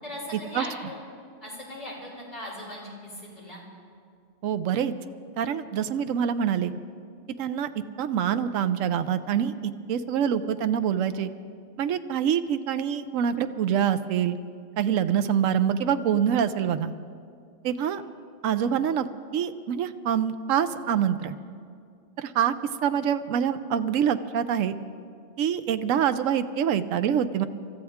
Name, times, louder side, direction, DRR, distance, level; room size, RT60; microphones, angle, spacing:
voice 1, 0.0-1.0 1.4-3.6, left 1 dB, 35° left, -6 dB, 5.8 m, -38 dB
voice 2, 4.4-4.9 5.4-6.7 7.4-7.7 8.0-9.5 9.9-11.3 11.8-14.4 14.8-16.9 17.6-18.0 18.4-19.1 19.3-21.4 22.2-22.5 22.8-24.7 25.4-27.5, right 8 dB, 80° right, 10 dB, 1.0 m, -25 dB
28.5 x 14.0 x 3.6 m, 2.4 s
omnidirectional pair, 1.4 m